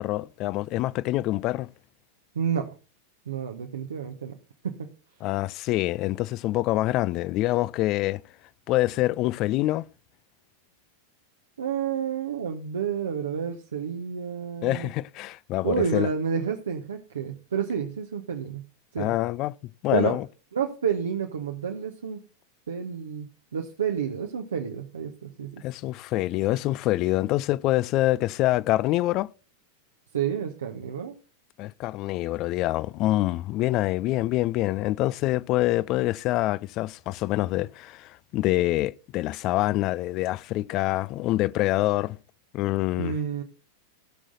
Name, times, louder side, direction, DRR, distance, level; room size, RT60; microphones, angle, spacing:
voice 1, 0.0-1.7 5.2-8.2 8.7-9.8 14.6-16.1 19.0-19.5 19.8-20.3 25.6-29.3 31.6-42.2 42.5-43.2, left 17 dB, 40° left, 0.4 m, -25 dB
voice 2, 2.3-2.7 3.3-4.3 4.6-4.9 11.6-14.9 15.6-18.6 18.9-19.1 19.9-20.2 20.5-22.2 22.7-25.6 30.1-31.1 43.0-43.4, right 7 dB, 65° right, 1.0 m, -30 dB
16.0 x 6.3 x 4.0 m
figure-of-eight pair, 90°, 0 cm